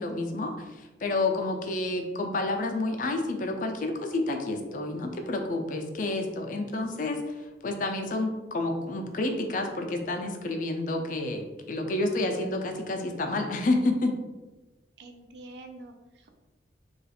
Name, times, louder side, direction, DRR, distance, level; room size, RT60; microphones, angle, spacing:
voice 1, 0.0-14.1, left 2 dB, 45° left, 4 dB, 0.4 m, -29 dB
voice 2, 15.0-16.3, right 2 dB, 70° right, 5 dB, 0.4 m, -46 dB
2.4 x 2.4 x 4.0 m, 1.1 s
head